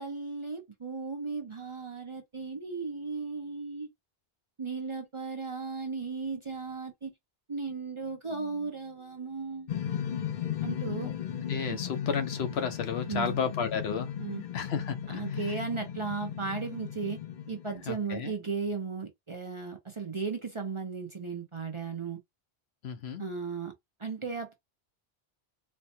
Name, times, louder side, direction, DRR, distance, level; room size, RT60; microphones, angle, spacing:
voice 1, 0.0-3.9 4.6-7.1 7.5-9.8 10.6-11.1 11.7-11.8 13.1-13.4 14.2-14.4 15.1-17.2 17.5-22.2 23.2-23.7 24.0-24.5, right 4 dB, 35° right, 0.6 m, -36 dB
sound 1, 9.7-18.1, left 9 dB, 55° left, 0.6 m, -36 dB
voice 2, 11.5-14.1 14.5-15.5 17.9-18.3 22.8-23.2, left 6 dB, 75° left, 1.0 m, -33 dB
4.2 x 2.2 x 2.7 m
omnidirectional pair, 1.1 m